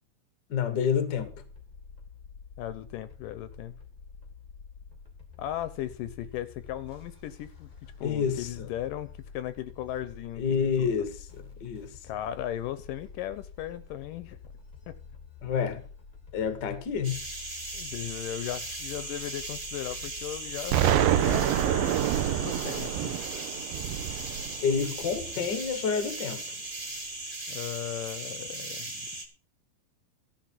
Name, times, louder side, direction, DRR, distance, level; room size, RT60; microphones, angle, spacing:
voice 1, 0.5-1.3 8.0-8.7 10.4-11.9 15.4-15.8 16.3-17.2 24.6-26.5, left 6 dB, 45° left, 1.5 m, -29 dB
sound 1, 1.1-20.8, left 5 dB, 15° left, 1.3 m, -48 dB
voice 2, 2.6-3.7 5.4-7.7 8.0-10.9 12.0-14.4 14.9-15.0 17.7-23.2 27.5-29.1, left 12 dB, 75° left, 2.2 m, -37 dB
sound 2, 17.0-29.2, right 2 dB, 25° right, 1.0 m, -38 dB
Explosion, 20.7-25.6, right 11 dB, 80° right, 2.4 m, -27 dB
13.5 x 6.0 x 7.5 m
omnidirectional pair, 4.1 m